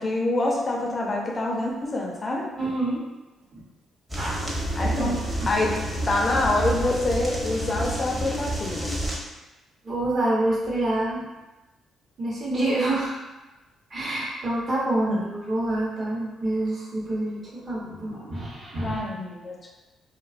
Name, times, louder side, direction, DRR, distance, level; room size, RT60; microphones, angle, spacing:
voice 1, 0.0-2.5 4.8-5.1 5.5-5.7 6.1-8.9 15.1-15.2 18.8-19.7, left 2 dB, 30° left, -2 dB, 0.4 m, -26 dB
voice 2, 2.6-3.0 3.5-3.6 4.2-4.4 4.9-5.2 9.8-11.2 12.2-13.2 13.9-19.0, right 1 dB, 45° right, -5 dB, 0.8 m, -27 dB
sound 1, 4.1-9.2, right 1 dB, 10° right, 0.7 m, -29 dB
2.4 x 2.2 x 2.4 m, 1.1 s
cardioid pair, 90°, 0 cm